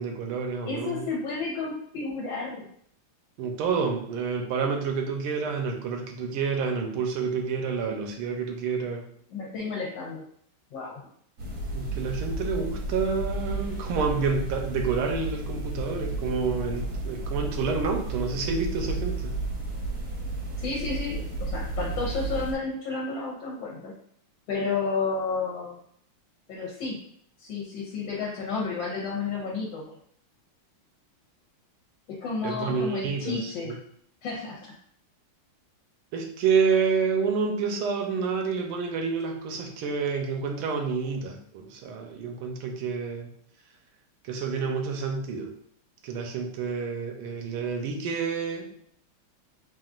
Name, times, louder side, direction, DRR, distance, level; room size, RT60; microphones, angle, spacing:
voice 1, 0.0-1.1 3.4-9.0 11.7-19.3 32.4-33.8 36.1-43.3 44.2-45.5 46.0-48.7, right 5 dB, 80° right, 3 dB, 1.5 m, -29 dB
voice 2, 0.7-2.6 9.3-10.2 10.7-11.0 20.6-23.9 24.5-25.8 26.5-27.0 27.4-29.9 32.1-33.7 34.2-34.6, left 4 dB, 65° left, -3 dB, 1.4 m, -31 dB
sound 1, 11.4-22.5, right 2 dB, 60° right, 1.0 m, -32 dB
5.9 x 2.4 x 2.4 m, 0.65 s
omnidirectional pair, 2.4 m